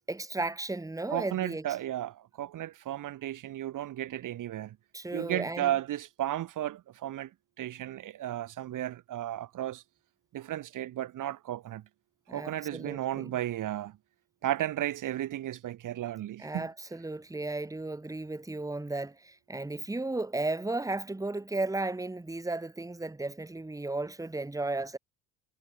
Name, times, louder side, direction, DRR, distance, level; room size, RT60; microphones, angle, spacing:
voice 1, 0.1-1.6 4.9-5.7 12.3-13.3 16.4-25.0, right 2 dB, 10° right, 2.5 m, -34 dB
voice 2, 1.1-4.8 5.1-7.3 7.6-9.8 10.3-11.8 12.3-14.0 14.4-16.7, right 12 dB, 45° right, 2.2 m, -34 dB
hypercardioid pair, 70°, 43 cm